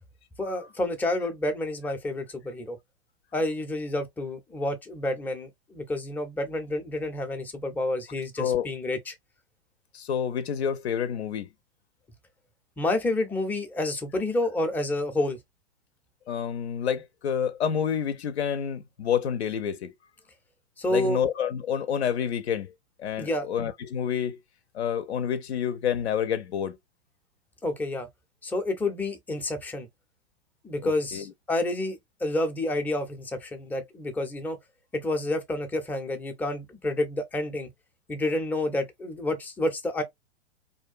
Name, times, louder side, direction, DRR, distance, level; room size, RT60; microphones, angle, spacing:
voice 1, 0.4-2.8 3.3-9.1 12.8-15.4 20.8-21.2 23.2-23.5 27.6-28.1 28.4-29.9 30.6-34.6 34.9-37.7 38.1-40.0, left 1 dB, 5° left, 0.4 m, -29 dB
voice 2, 9.9-11.5 16.3-19.9 20.9-22.7 23.0-24.4 24.7-26.8 30.8-31.2, left 8 dB, 85° left, 0.5 m, -28 dB
2.6 x 2.2 x 2.4 m
hypercardioid pair, 115°, 32 cm